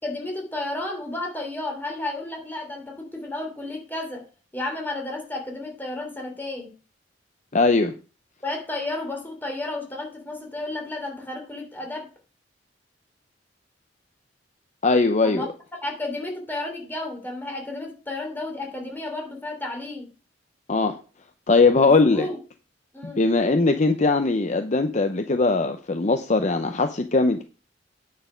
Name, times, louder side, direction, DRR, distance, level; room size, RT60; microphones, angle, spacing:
voice 1, 0.0-4.3 4.5-6.7 8.4-12.1 15.2-15.5 15.8-20.1 21.7-22.4 22.9-23.2, left 2 dB, 10° left, 3.1 m, -32 dB
voice 2, 7.5-7.9 14.8-15.5 20.7-21.0 21.5-22.3 23.0-27.4, left 3 dB, 40° left, 0.7 m, -20 dB
9.4 x 6.7 x 5.1 m
head